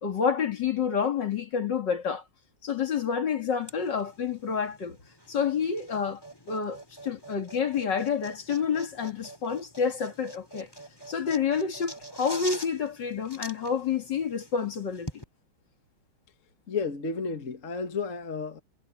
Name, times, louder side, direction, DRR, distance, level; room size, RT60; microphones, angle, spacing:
voice 1, 0.0-2.2 2.6-5.0 5.3-6.2 6.5-10.7 11.1-15.2, left 6 dB, 60° left, 2.7 m, -29 dB
sound 1, 3.6-15.2, equal, 10° left, 2.9 m, -45 dB
voice 2, 16.7-18.6, left 4 dB, 40° left, 1.8 m, -32 dB
omnidirectional pair, 2.2 m